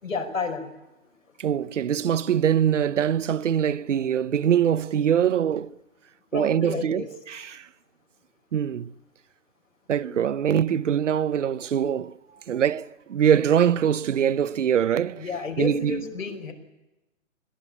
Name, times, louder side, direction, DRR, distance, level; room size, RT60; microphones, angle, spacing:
voice 1, 0.0-0.7 6.3-7.1 15.2-16.5, left 4 dB, 90° left, 4.8 m, -30 dB
voice 2, 1.4-5.8 6.3-7.7 8.5-8.9 9.9-12.2 12.5-15.2 15.6-16.0, right 9 dB, 70° right, 0.9 m, -23 dB
21.5 x 16.0 x 8.3 m
hypercardioid pair, 130°, 39 cm